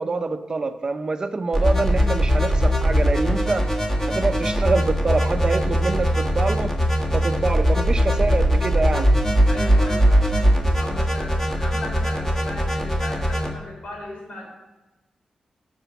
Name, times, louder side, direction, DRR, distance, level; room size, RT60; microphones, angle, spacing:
voice 1, 0.0-3.7 4.1-6.7 7.1-9.1, right 3 dB, 35° right, 9 dB, 0.6 m, -25 dB
sound 1, 1.5-13.5, equal, 20° left, 1.6 m, -20 dB
voice 2, 9.5-14.5, left 2 dB, 70° left, -1 dB, 3.4 m, -37 dB
11.5 x 4.5 x 7.0 m, 1.1 s
wide cardioid pair, 110°, 2 cm